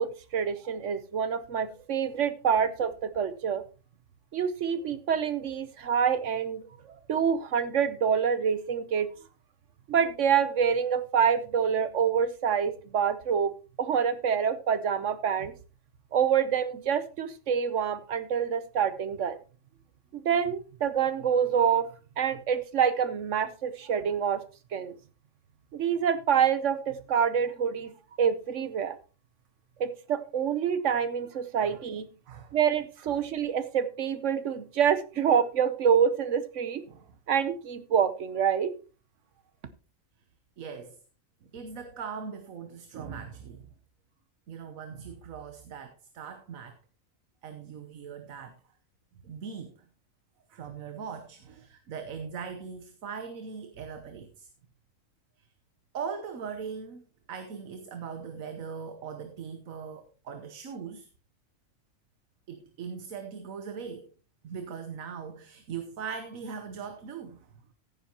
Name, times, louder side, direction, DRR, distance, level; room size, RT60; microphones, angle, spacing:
voice 1, 0.0-3.6 4.3-6.6 7.1-9.1 9.9-13.5 13.8-15.5 16.1-19.4 20.1-21.9 22.2-24.4 24.7-24.9 25.7-27.9 28.2-29.0 29.8-32.1 32.5-36.8 37.3-38.7, right 7 dB, 65° right, 1.1 m, -26 dB
voice 2, 33.0-33.3 36.9-37.2 40.6-41.0 41.4-43.7 44.5-46.8 47.4-48.6 49.2-49.8 50.5-54.5 55.4-55.5 55.9-61.1 62.5-64.1 64.4-67.5, right 6 dB, 90° right, 1.4 m, -40 dB
15.0 x 9.5 x 2.9 m
omnidirectional pair, 1.4 m